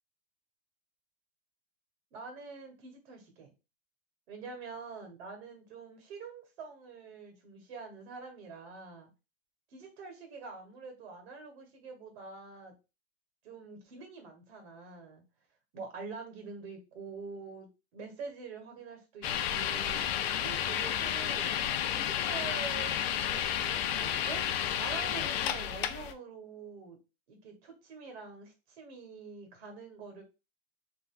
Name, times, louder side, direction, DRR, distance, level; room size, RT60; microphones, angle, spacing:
voice 1, 2.1-3.5 4.3-9.1 9.7-12.7 13.4-15.2 15.7-21.5 21.9-27.0 27.3-30.2, right 4 dB, 55° right, 4 dB, 1.5 m, -46 dB
sound 1, 19.2-26.1, left 10 dB, 55° left, 0.5 m, -31 dB
3.9 x 2.5 x 2.4 m, 0.29 s
hypercardioid pair, 145°, 37 cm